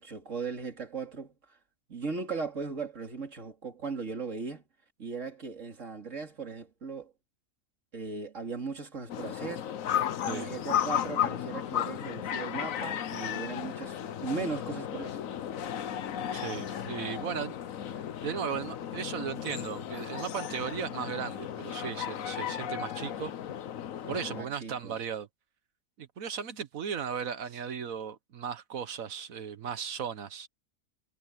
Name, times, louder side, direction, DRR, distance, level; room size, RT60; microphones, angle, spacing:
voice 1, 0.0-1.6 1.9-4.6 5.0-7.1 7.9-9.7 10.2-15.2 24.0-25.0, right 4 dB, 65° right, 3.2 m, -38 dB
sound 1, 9.1-24.4, left 10 dB, 75° left, 1.2 m, -34 dB
voice 2, 16.3-17.6 18.2-23.3 24.1-25.3 26.0-30.5, right 7 dB, 80° right, 1.5 m, -36 dB
omnidirectional pair, 1.4 m